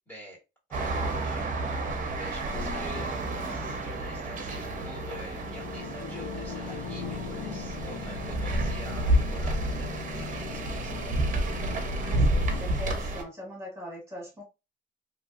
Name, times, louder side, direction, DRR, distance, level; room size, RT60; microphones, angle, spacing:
voice 1, 0.1-0.4 0.7-1.8 2.1-11.2, right 1 dB, 10° left, 1.5 m, -47 dB
sound 1, 0.7-13.2, right 1 dB, 40° right, 0.6 m, -30 dB
sound 2, 2.5-12.6, left 7 dB, 40° left, 0.5 m, -40 dB
voice 2, 11.9-14.4, equal, 15° right, 1.6 m, -41 dB
2.7 x 2.6 x 2.3 m
cardioid pair, 120°, 21 cm